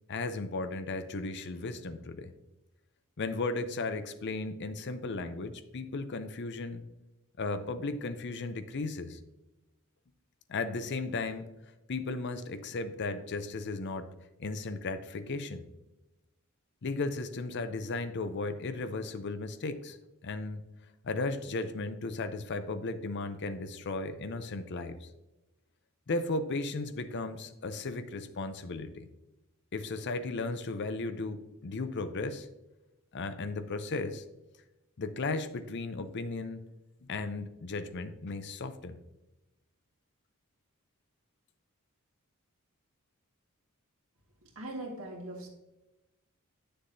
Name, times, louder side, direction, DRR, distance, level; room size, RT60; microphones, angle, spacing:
voice 1, 0.1-2.3 3.2-6.8 7.4-9.2 10.5-11.5 11.9-14.1 14.4-15.6 16.8-20.0 20.2-20.6 21.0-25.1 26.1-29.1 29.7-32.5 33.1-34.2 35.0-36.6 37.0-39.0, left 3 dB, 55° left, 11 dB, 0.6 m, -35 dB
voice 2, 44.6-45.5, right 1 dB, 75° right, 0 dB, 1.8 m, -40 dB
9.5 x 6.7 x 2.7 m, 0.97 s
head